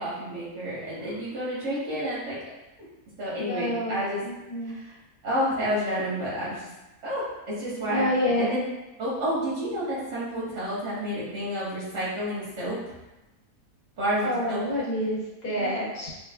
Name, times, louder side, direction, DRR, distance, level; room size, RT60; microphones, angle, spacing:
voice 1, 0.0-2.4 3.2-4.2 4.6-4.9 5.2-6.7 7.0-8.6 9.0-12.8 14.0-14.6 15.5-15.7, equal, 85° right, -9 dB, 2.3 m, -30 dB
voice 2, 3.4-4.7 7.9-8.5 14.2-16.1, left 1 dB, 85° left, -7 dB, 1.9 m, -28 dB
6.8 x 2.3 x 2.3 m, 1.0 s
omnidirectional pair, 1.7 m